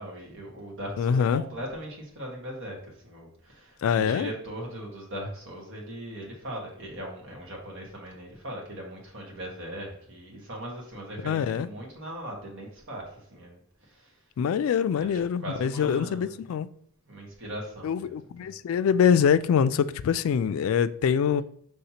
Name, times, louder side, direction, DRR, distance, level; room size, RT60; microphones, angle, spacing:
voice 1, 0.0-14.1 15.0-15.1 15.4-16.4 17.1-18.5, equal, 65° right, 1.5 m, -39 dB
voice 2, 1.0-1.4 3.8-4.3 11.2-11.7 14.4-16.7 17.8-21.4, left 7 dB, 75° left, 0.3 m, -24 dB
5.6 x 3.3 x 2.8 m
head